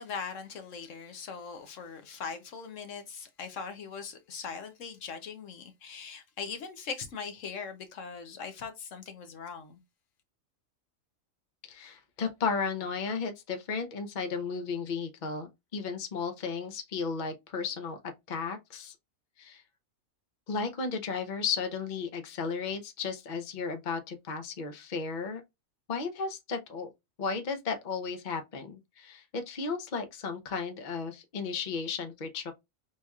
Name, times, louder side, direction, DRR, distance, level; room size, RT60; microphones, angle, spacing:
voice 1, 0.0-9.8, left 5 dB, 70° left, 1.1 m, -40 dB
voice 2, 11.6-18.0 18.3-18.9 19.4-19.6 20.5-25.4 25.9-26.9 27.2-32.5, left 5 dB, 40° left, 0.8 m, -34 dB
6.3 x 2.9 x 2.3 m
omnidirectional pair, 1.4 m